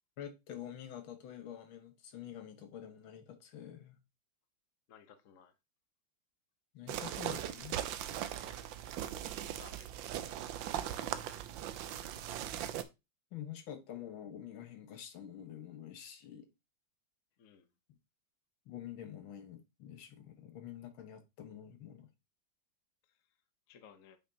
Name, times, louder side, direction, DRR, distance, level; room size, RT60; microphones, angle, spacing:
voice 1, 0.2-4.0 6.7-7.8 13.3-16.5 17.9-18.0 18.7-22.1, left 10 dB, 75° left, 1.8 m, -47 dB
voice 2, 4.9-5.5 8.4-8.8 9.6-9.9 17.4-17.7 23.7-24.2, left 7 dB, 55° left, 1.0 m, -58 dB
sound 1, 6.9-12.8, right 11 dB, 75° right, 1.3 m, -39 dB
7.2 x 5.8 x 2.7 m
omnidirectional pair, 2.2 m